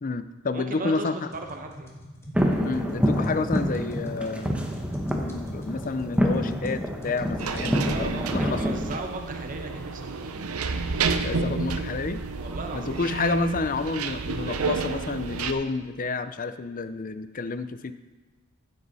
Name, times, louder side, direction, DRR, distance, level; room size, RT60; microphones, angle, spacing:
voice 1, 0.0-1.3 2.6-4.6 5.1-8.6 11.2-12.2 12.7-17.9, left 4 dB, 40° left, 12 dB, 0.5 m, -30 dB
voice 2, 0.5-1.9 7.7-10.4 12.4-13.2, right 2 dB, 40° right, 3 dB, 1.0 m, -37 dB
sound 1, 1.3-7.7, equal, 10° left, 1.5 m, -43 dB
sound 2, 2.3-9.0, equal, 5° right, 0.9 m, -27 dB
sound 3, 7.4-15.5, right 4 dB, 85° right, 0.7 m, -30 dB
15.0 x 7.9 x 4.1 m, 1.3 s
head